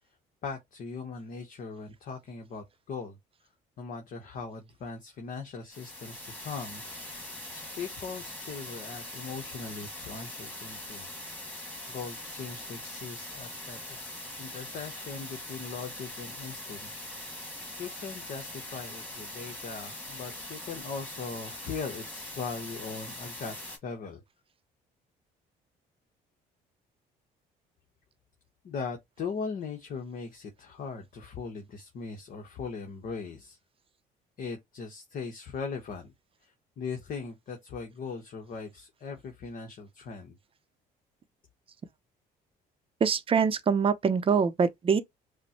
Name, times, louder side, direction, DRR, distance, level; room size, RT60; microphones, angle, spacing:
voice 1, 0.4-3.2 3.8-7.2 7.5-11.1 11.9-14.0 14.4-16.9 17.8-24.2 28.6-33.6 34.4-36.1 36.4-40.4, left 5 dB, 55° left, 1.1 m, -39 dB
sound 1, 5.7-23.8, left 1 dB, 10° left, 1.8 m, -42 dB
voice 2, 43.0-45.0, right 6 dB, 35° right, 0.7 m, -24 dB
5.1 x 2.2 x 2.9 m
cardioid pair, 110°, 17 cm